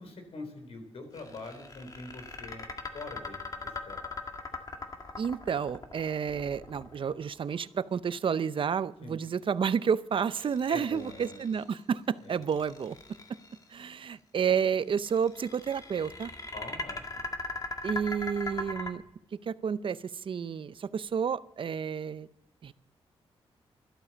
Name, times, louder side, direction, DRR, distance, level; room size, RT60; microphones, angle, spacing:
voice 1, 0.0-2.7 2.9-4.1 9.0-9.2 10.7-11.5 12.2-12.4 16.5-17.2, left 2 dB, 75° left, 6 dB, 3.8 m, -44 dB
sound 1, 1.1-7.4 10.2-11.7 12.3-13.6 14.9-18.9, left 3 dB, 35° left, 1.9 m, -40 dB
voice 2, 5.2-13.0 13.7-16.3 17.8-19.0 19.5-22.3 22.6-22.7, right 7 dB, 55° right, 16 dB, 0.6 m, -30 dB
12.5 x 12.0 x 7.2 m, 0.78 s
cardioid pair, 85°, 10 cm